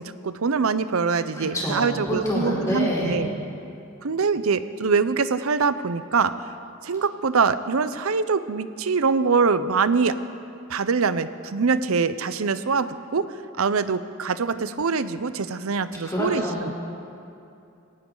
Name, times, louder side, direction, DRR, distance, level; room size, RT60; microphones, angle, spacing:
voice 1, 0.0-3.3 4.0-6.3 6.8-10.2 10.7-13.3 13.6-16.7, right 5 dB, 80° right, 13 dB, 0.7 m, -24 dB
voice 2, 1.4-3.2 16.0-16.6, equal, 15° left, -7 dB, 3.6 m, -26 dB
20.0 x 17.5 x 3.9 m, 2.7 s
head